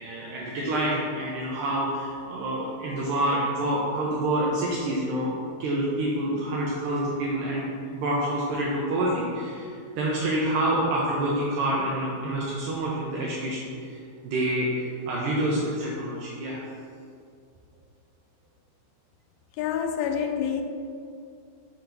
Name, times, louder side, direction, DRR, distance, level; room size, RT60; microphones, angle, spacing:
voice 1, 0.0-5.3 5.6-7.7 7.9-16.6, right 1 dB, 75° right, -5 dB, 2.2 m, -27 dB
voice 2, 19.6-20.6, left 8 dB, 90° left, 5 dB, 2.4 m, -27 dB
7.9 x 2.9 x 5.1 m, 2.3 s
omnidirectional pair, 4.3 m